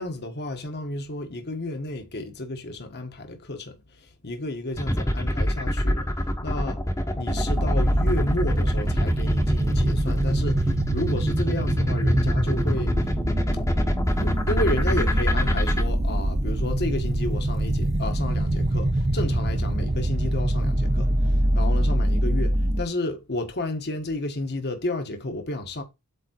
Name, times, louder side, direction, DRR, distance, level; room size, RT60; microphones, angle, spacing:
voice 1, 0.0-6.1 6.4-6.8 7.1-13.0 13.8-13.9 14.2-25.8, left 1 dB, 50° left, 1.3 m, -32 dB
sound 1, 4.8-15.8, left 1 dB, 15° left, 1.1 m, -25 dB
sound 2, 7.3-22.8, right 1 dB, 30° right, 0.9 m, -24 dB
8.5 x 3.7 x 4.4 m
head